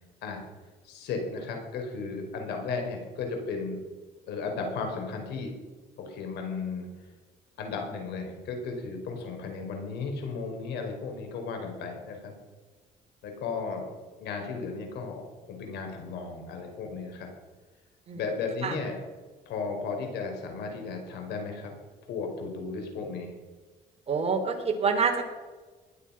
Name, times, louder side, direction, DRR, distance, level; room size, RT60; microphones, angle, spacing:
voice 1, 0.8-3.8 4.3-5.5 6.0-6.9 7.6-12.3 13.2-13.9 14.2-17.3 18.1-19.0 19.5-21.7 22.0-23.4, left 4 dB, 80° left, 3 dB, 4.9 m, -35 dB
voice 2, 24.1-25.2, right 5 dB, 35° right, 4 dB, 3.4 m, -26 dB
20.0 x 12.0 x 5.8 m, 1.3 s
cardioid pair, 110°, 17 cm